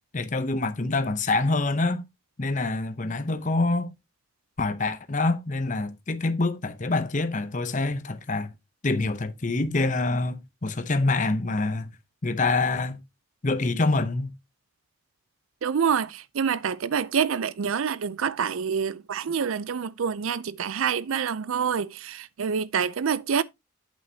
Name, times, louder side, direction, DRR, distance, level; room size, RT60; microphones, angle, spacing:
voice 1, 0.1-2.0 2.4-3.9 4.6-8.5 8.8-11.9 12.2-13.0 13.4-14.3, left 3 dB, 35° left, 0.7 m, -26 dB
voice 2, 15.6-23.4, right 7 dB, 80° right, 0.5 m, -27 dB
8.4 x 7.8 x 2.7 m
head